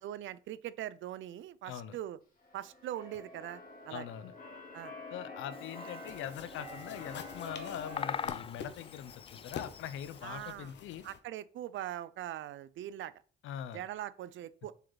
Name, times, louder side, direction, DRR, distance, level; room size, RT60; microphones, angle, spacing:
voice 1, 0.0-2.2 2.5-4.1 4.7-4.9 10.2-10.7 11.0-13.1 13.7-14.7, right 12 dB, 75° right, 0.6 m, -41 dB
voice 2, 1.6-2.0 3.9-4.3 5.1-11.0 13.4-13.8, left 10 dB, 85° left, 0.8 m, -42 dB
Keyboard (musical), 2.4-8.3, left 3 dB, 45° left, 2.8 m, -47 dB
Bird vocalization bird call bird song, 5.5-10.5, left 7 dB, 30° left, 0.3 m, -44 dB
sound 1, 6.1-11.2, left 8 dB, 60° left, 1.2 m, -48 dB
7.4 x 6.8 x 4.0 m
cardioid pair, 90°, 20 cm